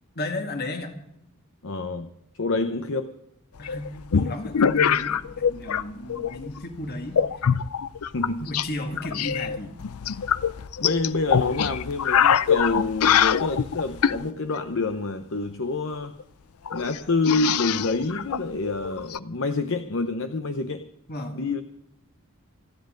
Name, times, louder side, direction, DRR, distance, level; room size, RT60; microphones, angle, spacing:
voice 1, 0.2-1.0 3.6-7.2 8.2-9.7 21.1-21.4, left 1 dB, 45° left, 4 dB, 2.1 m, -34 dB
voice 2, 1.6-2.1 2.3-3.1 8.1-8.5 10.8-16.1 16.7-20.8 21.3-21.6, left 3 dB, 60° left, 8 dB, 0.8 m, -27 dB
sound 1, 3.6-5.8 6.1-6.6 7.1-8.7 9.0-14.2 15.9-16.2 16.7-19.2, left 7 dB, 85° left, 0.5 m, -24 dB
28.5 x 10.5 x 3.9 m, 0.80 s
head